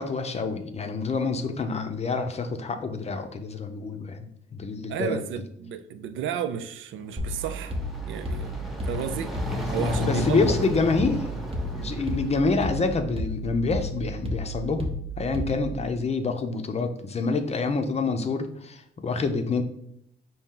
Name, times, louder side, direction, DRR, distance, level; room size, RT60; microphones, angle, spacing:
voice 1, 0.0-4.3 4.5-5.2 9.8-11.2 11.7-19.6, left 4 dB, 30° left, 0.5 m, -27 dB
voice 2, 4.9-7.8 8.1-8.5 8.8-10.4, right 8 dB, 75° right, 0.5 m, -32 dB
sound 1, 7.1-13.1, left 2 dB, ahead, 0.9 m, -33 dB
sound 2, 7.2-15.8, equal, 30° right, 0.8 m, -33 dB
4.2 x 2.8 x 3.7 m
cardioid pair, 90°, 20 cm